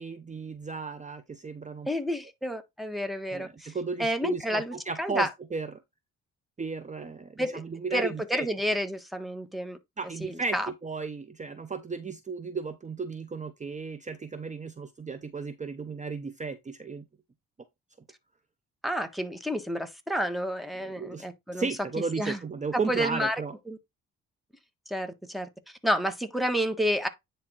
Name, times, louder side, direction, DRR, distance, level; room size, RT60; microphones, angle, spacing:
voice 1, 0.0-1.9 3.3-5.7 6.6-8.5 10.0-17.0 20.8-23.5, right 4 dB, 25° right, 0.8 m, -34 dB
voice 2, 1.9-3.7 4.0-5.3 7.4-7.6 7.9-9.8 10.2-10.7 18.8-21.7 22.2-22.4 22.9-23.4 23.7-23.8 24.9-25.5 25.8-27.1, equal, ahead, 1.4 m, -30 dB
9.8 x 3.4 x 4.2 m
cardioid pair, 90°, 30 cm